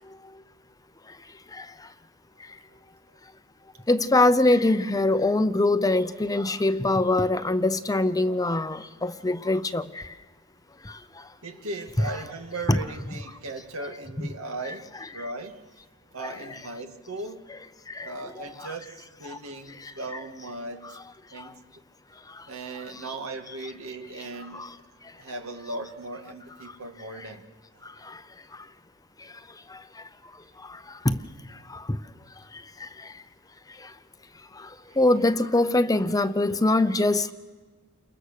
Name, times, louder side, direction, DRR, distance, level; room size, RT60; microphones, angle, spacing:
voice 1, 3.9-10.0 12.7-12.8 18.0-18.1 24.6-24.7 31.0-31.2 31.9-32.0 35.0-37.3, left 2 dB, 15° left, 0.7 m, -22 dB
voice 2, 11.4-15.6 16.1-17.5 18.0-21.0 21.3-21.6 22.4-24.8 25.1-27.5 34.9-35.0, right 2 dB, 80° right, 2.2 m, -38 dB
29.5 x 23.0 x 6.6 m
head